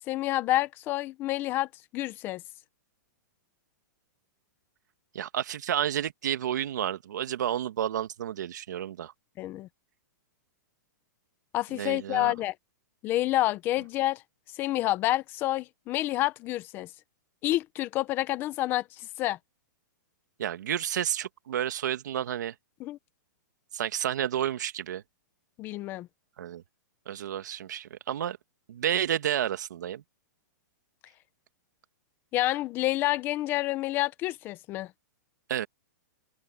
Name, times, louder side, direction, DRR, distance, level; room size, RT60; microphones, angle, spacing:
voice 1, 0.1-2.4 9.4-9.7 11.5-12.5 13.0-14.2 14.6-16.9 17.4-18.8 19.2-19.4 22.8-23.0 25.6-26.1 32.3-34.9, left 16 dB, 20° left, 0.7 m, -28 dB
voice 2, 5.1-9.1 11.7-12.3 20.4-22.5 23.7-25.0 26.4-26.6 27.1-28.4 28.7-30.0 35.5-35.7, right 10 dB, 65° right, 1.9 m, -30 dB
open air
hypercardioid pair, 170°, 10 cm